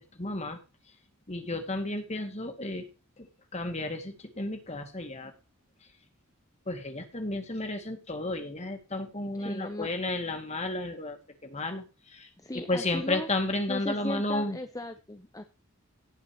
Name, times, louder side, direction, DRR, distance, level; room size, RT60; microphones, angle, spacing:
voice 1, 0.2-0.6 1.3-2.9 3.2-3.3 3.5-5.3 6.7-11.2 11.4-11.8 12.1-12.3 12.5-14.6, left 2 dB, 30° left, 6 dB, 2.4 m, -32 dB
voice 2, 9.3-9.9 12.4-13.3 13.7-15.4, left 1 dB, 15° left, 8 dB, 0.9 m, -37 dB
18.5 x 7.1 x 3.1 m, 0.30 s
head